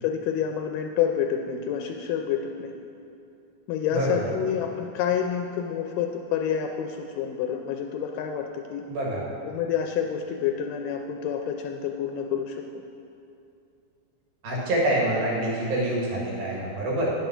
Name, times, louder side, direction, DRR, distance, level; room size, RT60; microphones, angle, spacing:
voice 1, 0.0-2.7 3.7-8.9 9.4-12.7, left 8 dB, 80° left, 3 dB, 2.0 m, -28 dB
voice 2, 3.9-4.3 8.9-9.2 14.4-17.1, right 1 dB, 85° right, -4 dB, 3.7 m, -26 dB
9.7 x 7.0 x 6.0 m, 2.6 s
omnidirectional pair, 4.1 m